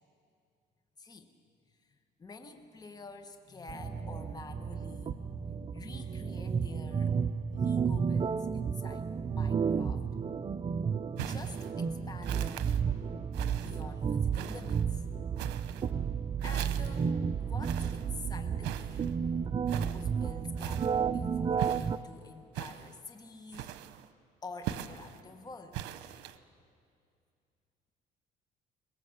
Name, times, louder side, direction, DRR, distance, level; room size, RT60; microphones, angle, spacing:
voice 1, 1.0-1.3 1.8-7.2 7.5-10.0 11.1-12.8 13.6-15.0 16.4-17.1 17.4-19.2 19.7-23.8 24.4-25.8, left 3 dB, 25° left, 7 dB, 1.4 m, -48 dB
sound 1, 3.7-22.0, right 6 dB, 30° right, 0.6 m, -32 dB
sound 2, 11.2-11.7 12.2-12.8 13.3-13.8 14.3-14.8 15.4-15.9 16.4-17.1 17.6-18.1 18.6-19.1 19.7-20.1 20.6-21.0 21.6-22.0 22.5-23.0 23.5-24.1 24.6-25.2 25.7-26.4, right 12 dB, 90° right, 0.9 m, -41 dB
23.0 x 20.0 x 7.9 m, 2.4 s
cardioid pair, 110°, 17 cm